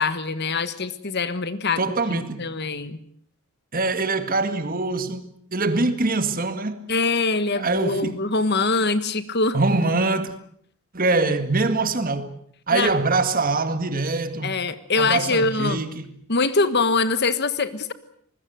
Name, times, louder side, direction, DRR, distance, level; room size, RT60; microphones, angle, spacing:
voice 1, 0.0-1.8 2.1-3.0 6.9-9.6 12.7-12.9 14.4-15.8 16.3-17.9, left 3 dB, 50° left, 1.4 m, -23 dB
voice 2, 1.8-2.5 3.7-5.3 5.5-6.9 7.5-8.2 9.5-10.3 10.9-12.4 12.7-14.6 15.0-16.1, right 3 dB, 40° right, 1.9 m, -23 dB
25.0 x 20.5 x 7.9 m
head